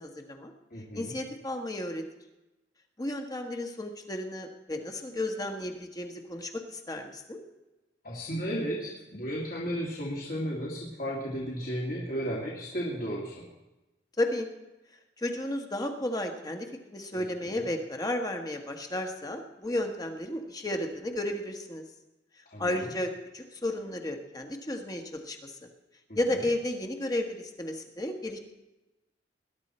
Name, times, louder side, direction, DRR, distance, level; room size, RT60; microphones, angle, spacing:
voice 1, 0.0-0.5 0.9-2.0 3.0-7.4 14.2-14.5 15.2-21.8 22.6-25.5 26.1-28.4, left 1 dB, 20° left, 4 dB, 1.4 m, -33 dB
voice 2, 0.7-1.1 8.0-13.5 17.1-17.6 22.5-22.9 26.1-26.2, equal, 50° left, -3 dB, 2.2 m, -34 dB
20.5 x 11.0 x 4.3 m, 1.0 s
head